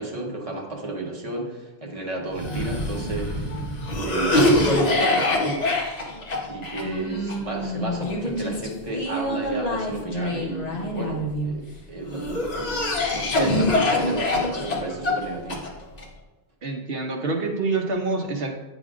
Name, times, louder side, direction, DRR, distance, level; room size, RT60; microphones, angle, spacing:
voice 1, 0.0-3.7 4.0-5.7 6.5-12.7 13.1-15.6, right 2 dB, 30° right, -1 dB, 1.1 m, -31 dB
Cough, 2.3-11.5 12.1-16.0, left 1 dB, 40° left, 1.0 m, -25 dB
voice 2, 16.6-18.5, right 3 dB, 60° right, 3 dB, 0.9 m, -26 dB
9.0 x 5.3 x 2.5 m, 1.1 s
omnidirectional pair, 1.2 m